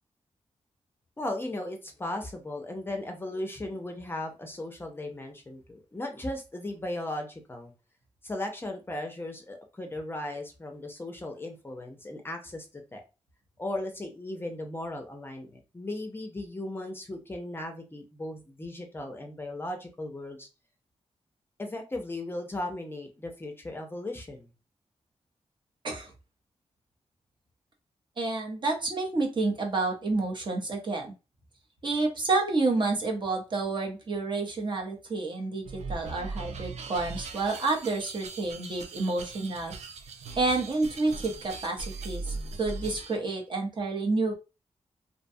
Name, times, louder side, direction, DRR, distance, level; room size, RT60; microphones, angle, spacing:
voice 1, 1.2-7.7 8.2-13.0 13.6-20.5 21.6-24.5, left 1 dB, 20° left, 3 dB, 0.5 m, -37 dB
voice 2, 28.2-31.1 31.8-39.7 40.4-44.3, right 3 dB, 45° right, 2 dB, 0.7 m, -29 dB
sound 1, 35.6-43.2, right 4 dB, 85° right, 0.4 m, -40 dB
2.6 x 2.2 x 2.6 m, 0.29 s
wide cardioid pair, 120°, 11 cm